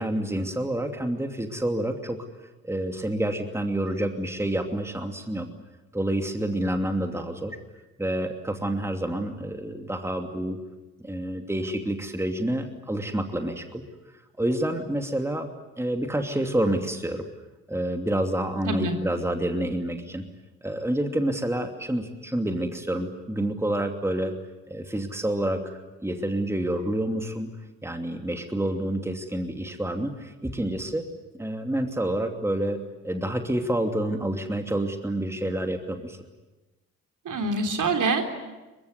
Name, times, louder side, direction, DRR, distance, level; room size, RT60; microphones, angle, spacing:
voice 1, 0.0-2.2 2.6-5.5 5.9-7.6 8.0-10.6 11.0-13.8 14.4-15.5 15.8-17.3 17.7-20.2 20.6-24.3 24.7-27.5 27.8-31.1 31.4-32.8 33.0-36.2, right 1 dB, 5° right, 5 dB, 2.7 m, -28 dB
voice 2, 18.7-19.0 37.3-38.2, right 3 dB, 50° right, 5 dB, 3.6 m, -25 dB
23.0 x 22.5 x 9.4 m, 1.1 s
hypercardioid pair, 50°, 41 cm